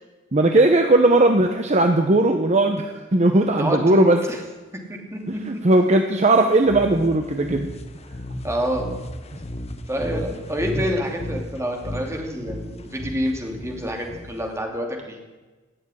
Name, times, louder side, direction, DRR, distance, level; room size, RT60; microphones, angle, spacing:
voice 1, 0.3-4.2 5.5-7.7, right 2 dB, 40° right, 5 dB, 0.9 m, -18 dB
voice 2, 3.6-4.4 4.9-5.4 8.4-8.9 9.9-15.2, equal, 15° right, 2 dB, 2.7 m, -27 dB
sound 1, 6.6-14.6, left 1 dB, 35° left, 1.1 m, -34 dB
17.5 x 7.2 x 9.9 m, 1.2 s
head